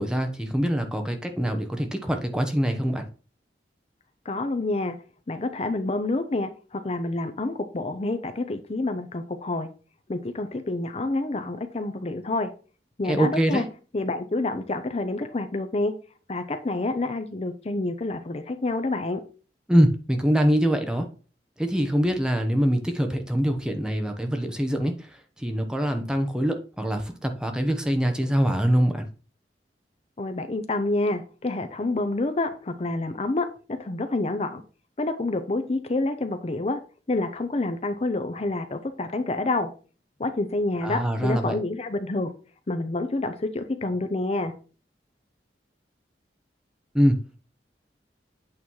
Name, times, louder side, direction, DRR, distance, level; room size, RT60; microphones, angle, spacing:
voice 1, 0.0-3.1 13.0-13.7 19.7-21.1 21.6-29.1 40.8-41.6 46.9-47.2, equal, 5° right, 5 dB, 0.8 m, -24 dB
voice 2, 4.3-5.0 5.3-9.7 10.1-12.5 13.0-13.6 13.9-15.9 16.3-19.2 30.2-33.5 33.8-34.6 35.0-36.8 37.1-39.7 40.2-42.3 42.7-44.5, left 2 dB, 35° left, 8 dB, 0.6 m, -28 dB
8.6 x 3.1 x 5.4 m, 0.36 s
head